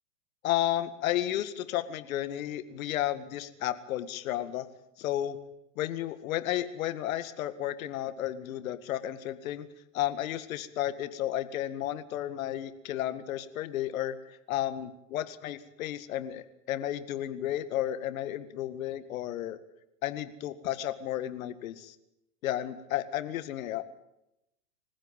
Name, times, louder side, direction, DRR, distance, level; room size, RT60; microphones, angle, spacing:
voice 1, 0.4-4.7 5.0-5.4 5.8-9.7 9.9-19.6 20.0-22.0 22.4-23.8, left 12 dB, 60° left, 12 dB, 2.0 m, -33 dB
26.0 x 15.5 x 9.1 m, 0.88 s
hypercardioid pair, 115°, 47 cm